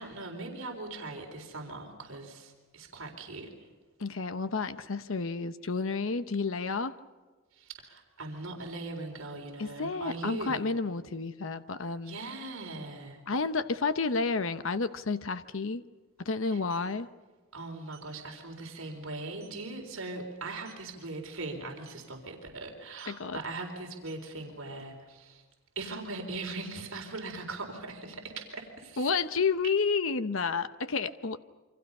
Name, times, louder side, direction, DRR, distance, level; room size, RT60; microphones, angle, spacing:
voice 1, 0.0-3.5 7.5-10.7 12.0-13.2 16.5-16.6 17.5-25.4 25.8-29.1, right 2 dB, 75° right, 3 dB, 4.1 m, -40 dB
voice 2, 4.0-7.0 9.6-12.2 13.3-15.8 16.2-17.1 23.1-23.4 29.0-31.4, left 4 dB, 65° left, 11 dB, 0.9 m, -30 dB
sound 1, 14.9-15.0 15.2-15.4 16.4-16.9 17.9-18.1 18.6-18.7 19.1-19.2 19.4-19.7 20.5-20.9 21.8-22.1 22.9-23.2 23.9-25.2, right 9 dB, 50° right, 7.7 m, -57 dB
28.5 x 25.0 x 5.5 m, 1.3 s
head